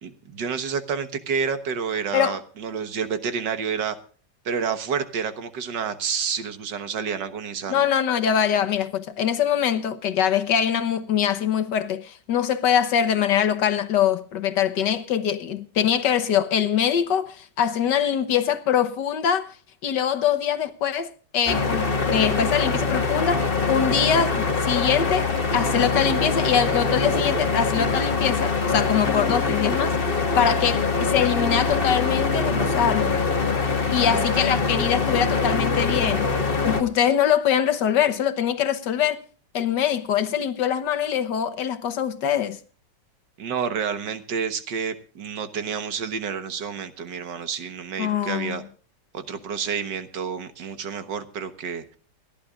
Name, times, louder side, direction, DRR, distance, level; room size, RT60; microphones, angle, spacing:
voice 1, 0.0-4.0 4.5-7.9 34.0-34.5 43.4-48.6 49.1-52.0, right 6 dB, 75° right, 1.9 m, -29 dB
voice 2, 7.7-19.5 19.8-33.2 33.9-36.4 36.6-39.2 39.5-42.6 48.0-48.6, left 8 dB, 70° left, 1.8 m, -23 dB
sound 1, 21.5-36.8, left 4 dB, 30° left, 1.8 m, -23 dB
29.0 x 11.5 x 2.4 m
omnidirectional pair, 1.9 m